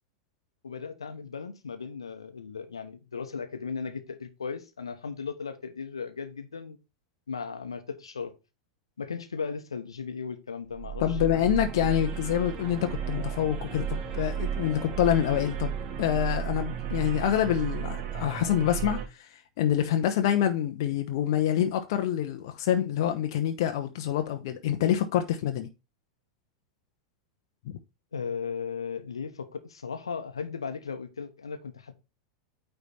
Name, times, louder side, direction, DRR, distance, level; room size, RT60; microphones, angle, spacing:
voice 1, 0.6-6.8 7.3-8.3 9.0-11.4 28.1-31.9, left 5 dB, 75° left, 1.0 m, -36 dB
sound 1, 10.7-19.1, right 8 dB, 40° right, 1.4 m, -33 dB
voice 2, 11.0-15.7 16.0-25.7 27.7-27.8, left 10 dB, 55° left, 0.8 m, -26 dB
9.2 x 3.4 x 4.2 m
figure-of-eight pair, 90°, 3 cm